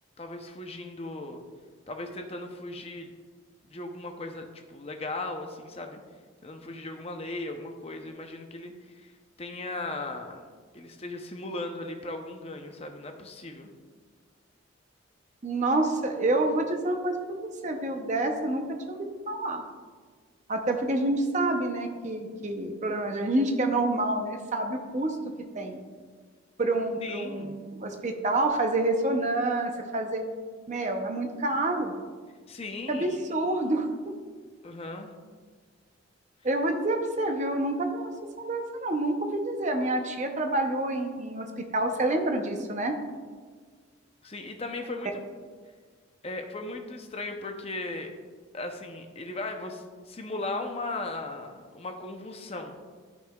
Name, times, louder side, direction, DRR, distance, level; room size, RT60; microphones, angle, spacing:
voice 1, 0.2-1.4 1.9-3.1 3.7-6.0 6.4-10.4 10.7-13.7 27.0-27.6 32.5-33.2 34.6-35.1 44.2-45.2 46.2-48.1 48.5-52.7, left 2 dB, 30° left, 4 dB, 0.7 m, -37 dB
voice 2, 15.4-19.6 20.5-25.2 25.5-25.8 26.6-30.2 30.7-31.9 32.9-34.1 36.4-38.1 38.4-43.0, right 2 dB, 35° right, 4 dB, 0.7 m, -28 dB
13.0 x 5.5 x 2.3 m, 1.5 s
head